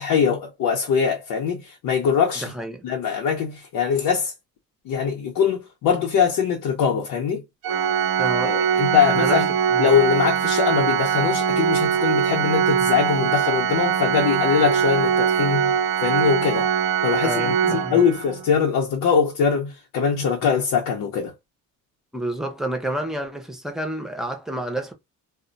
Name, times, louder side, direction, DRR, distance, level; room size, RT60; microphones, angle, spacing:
voice 1, 0.0-2.5 2.8-4.3 4.9-7.4 8.4-9.5 9.8-15.7 16.0-16.7 17.0-21.3, left 7 dB, 75° left, 0.7 m, -22 dB
voice 2, 2.4-2.9 8.2-9.4 9.7-9.9 17.2-18.1 22.1-24.9, right 1 dB, ahead, 0.6 m, -30 dB
Organ, 7.6-18.5, right 7 dB, 85° right, 0.7 m, -22 dB
2.2 x 2.1 x 3.8 m
cardioid pair, 135°, 34 cm